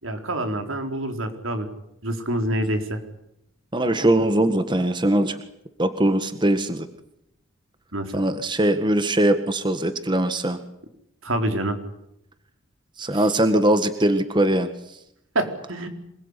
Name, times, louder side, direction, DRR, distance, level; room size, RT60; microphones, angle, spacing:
voice 1, 0.0-1.7 2.0-3.0 7.9-8.1 11.2-11.8 13.1-13.2 15.3-15.9, right 1 dB, 80° right, 6 dB, 4.5 m, -26 dB
voice 2, 3.7-5.4 5.8-6.9 8.1-10.6 13.0-14.7, right 1 dB, 20° right, 9 dB, 1.7 m, -21 dB
27.0 x 21.0 x 10.0 m, 0.79 s
head